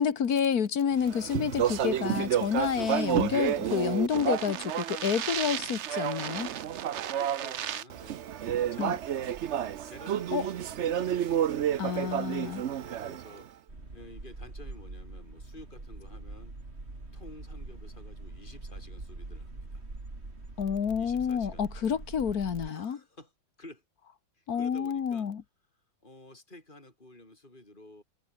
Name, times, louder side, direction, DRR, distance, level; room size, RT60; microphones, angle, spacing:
voice 1, 0.0-6.5 8.8-9.0 10.3-10.4 11.8-12.6 20.6-23.0 24.5-25.4, left 7 dB, 50° left, 1.8 m, -29 dB
Speech, 1.0-13.4, right 10 dB, 80° right, 0.6 m, -30 dB
voice 2, 5.0-5.5 6.7-8.2 8.7-9.4 9.8-11.4 12.7-13.7 13.9-16.6 17.1-19.8 21.0-21.6 22.6-23.3 23.6-23.8 24.3-25.3 26.0-28.0, left 1 dB, 25° left, 7.2 m, -52 dB
sound 1, 13.7-22.7, right 2 dB, 30° right, 4.1 m, -44 dB
omnidirectional pair, 2.2 m